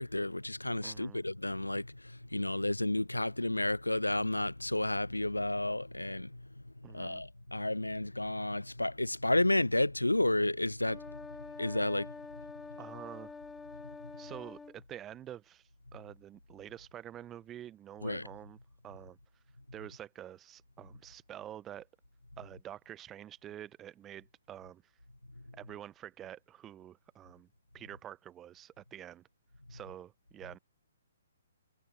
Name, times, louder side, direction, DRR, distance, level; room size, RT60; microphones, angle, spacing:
voice 1, 0.0-1.9 2.3-6.3 6.9-11.0 11.6-12.1 18.0-18.3, left 1 dB, 85° left, 0.5 m, -31 dB
voice 2, 0.8-1.2 6.8-7.2 12.8-13.4 14.2-18.6 18.8-19.2 19.7-21.9 22.4-24.9 25.5-27.5 27.7-29.2 29.7-30.6, right 11 dB, 15° right, 0.6 m, -48 dB
sound 1, 10.8-14.8, left 4 dB, 5° left, 2.6 m, -47 dB
figure-of-eight pair, 125°, 0 cm